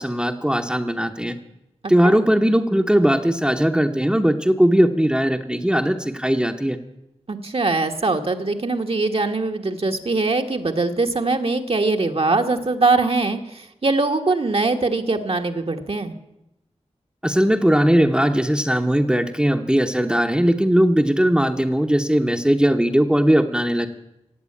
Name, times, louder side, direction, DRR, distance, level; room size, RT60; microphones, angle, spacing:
voice 1, 0.0-1.4 1.9-6.8 17.2-23.9, equal, 5° right, 4 dB, 0.9 m, -19 dB
voice 2, 7.3-16.1, right 3 dB, 50° right, 4 dB, 1.2 m, -22 dB
15.5 x 8.2 x 8.5 m, 0.90 s
wide cardioid pair, 60°, 12 cm